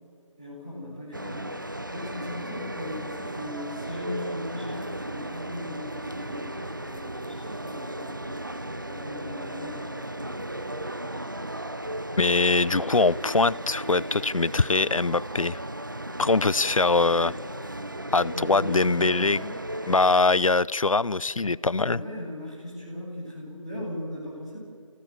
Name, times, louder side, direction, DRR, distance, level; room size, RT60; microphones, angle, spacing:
voice 1, 0.4-1.6 1.9-8.4 8.9-10.5 18.3-19.2 21.9-24.6, left 1 dB, 10° right, 4.2 m, -38 dB
sound 1, 1.1-20.2, right 1 dB, 40° right, 0.9 m, -36 dB
voice 2, 12.2-15.6 16.2-17.3 18.1-19.5 19.9-22.0, left 3 dB, 85° left, 0.6 m, -22 dB
28.0 x 16.5 x 7.8 m
figure-of-eight pair, 175°, 17 cm